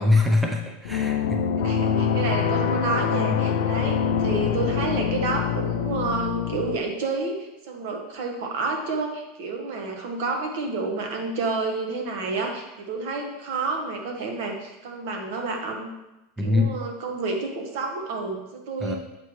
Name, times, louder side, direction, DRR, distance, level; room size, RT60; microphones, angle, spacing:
voice 1, 0.0-1.4 16.4-16.7 18.8-19.0, left 2 dB, 5° right, 1 dB, 0.6 m, -23 dB
sound 1, 0.8-6.8, left 8 dB, 80° left, 0.4 m, -25 dB
voice 2, 1.6-15.9 16.4-19.0, right 3 dB, 65° right, 3 dB, 1.2 m, -29 dB
7.9 x 4.4 x 3.1 m, 0.96 s
supercardioid pair, 145°, 0 cm